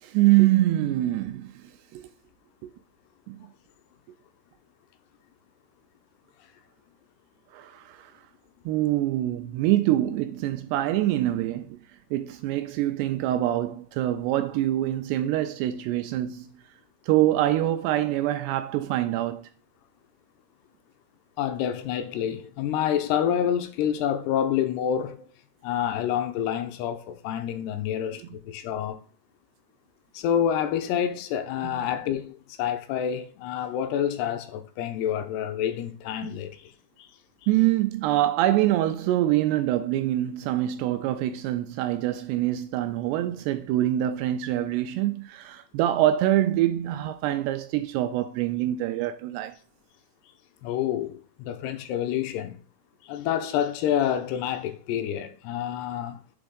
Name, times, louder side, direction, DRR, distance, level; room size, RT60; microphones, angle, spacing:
voice 1, 0.0-1.6 1.9-2.1 2.6-2.7 3.3-3.4 7.5-8.1 8.7-11.8 12.1-16.5 17.0-19.5 31.6-31.9 37.5-49.6, right 14 dB, 85° right, 2.4 m, -25 dB
voice 2, 21.4-25.3 25.6-29.0 30.1-36.7 37.0-37.1 50.6-52.6 53.0-56.2, left 9 dB, 80° left, 2.5 m, -28 dB
7.9 x 3.6 x 5.1 m
omnidirectional pair, 5.2 m